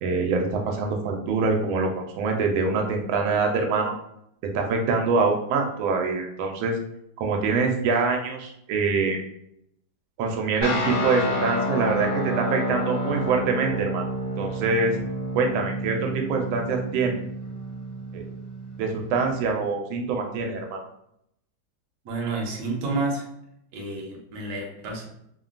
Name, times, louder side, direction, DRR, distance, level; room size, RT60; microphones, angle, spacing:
voice 1, 0.0-3.9 4.4-6.8 7.2-9.2 10.2-14.0 14.4-15.0 15.3-17.2 18.1-18.3 18.8-20.8, right 4 dB, 90° right, 2 dB, 1.4 m, -25 dB
sound 1, 10.6-19.5, equal, 65° left, 1.0 m, -30 dB
voice 2, 22.0-23.3 23.7-25.0, right 3 dB, 65° right, 0 dB, 1.1 m, -29 dB
3.3 x 2.2 x 2.4 m, 0.75 s
omnidirectional pair, 2.1 m